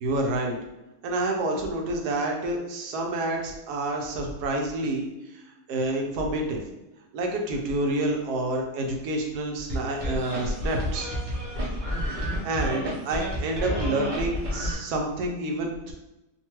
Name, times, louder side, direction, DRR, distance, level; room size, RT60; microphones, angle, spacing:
voice 1, 0.0-0.5 1.0-5.4 5.7-6.6 7.1-11.1 12.4-15.9, right 2 dB, 75° right, 2 dB, 1.0 m, -28 dB
sound 1, 9.7-14.7, equal, 45° right, 0.6 m, -30 dB
2.9 x 2.2 x 2.9 m, 0.96 s
omnidirectional pair, 1.8 m